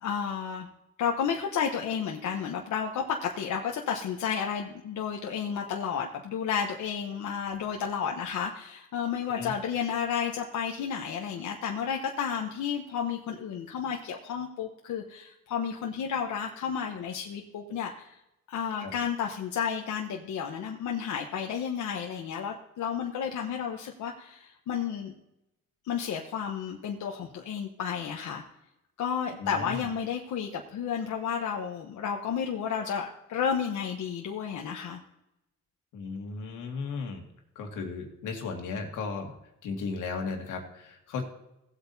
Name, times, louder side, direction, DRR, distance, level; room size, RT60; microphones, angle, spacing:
voice 1, 0.0-0.7 1.0-18.2 18.5-25.1 25.8-28.4 29.0-35.0, left 7 dB, 75° left, 2 dB, 1.1 m, -32 dB
voice 2, 29.4-29.9 35.9-37.2 37.6-39.3 39.6-41.2, left 4 dB, 90° left, 2 dB, 2.0 m, -35 dB
16.5 x 8.2 x 2.8 m, 0.87 s
cardioid pair, 90°, 30 cm